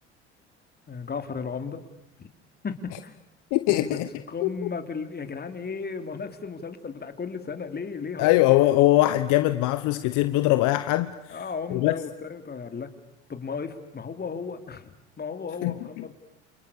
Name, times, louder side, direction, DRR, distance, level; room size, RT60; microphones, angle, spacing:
voice 1, 0.9-1.8 2.2-2.3 2.6-3.2 3.7-4.0 4.3-8.4 11.3-12.9 13.3-16.1, left 5 dB, 30° left, 3.3 m, -35 dB
voice 2, 3.5-4.1 4.4-4.5 8.2-11.4 11.7-11.9 15.6-16.1, left 16 dB, 60° left, 1.2 m, -22 dB
30.0 x 28.5 x 6.8 m
hypercardioid pair, 65°, 35 cm